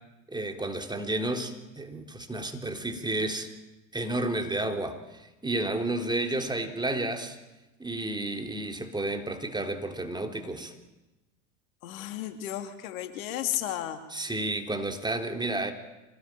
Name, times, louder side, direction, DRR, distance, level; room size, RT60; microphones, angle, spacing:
voice 1, 0.3-3.5 3.9-7.4 7.8-10.7 14.1-15.7, right 2 dB, 10° right, 4 dB, 3.6 m, -31 dB
voice 2, 11.8-14.0, left 13 dB, 65° left, 7 dB, 2.8 m, -33 dB
26.0 x 19.5 x 9.1 m, 1.0 s
hypercardioid pair, 80°, 45 cm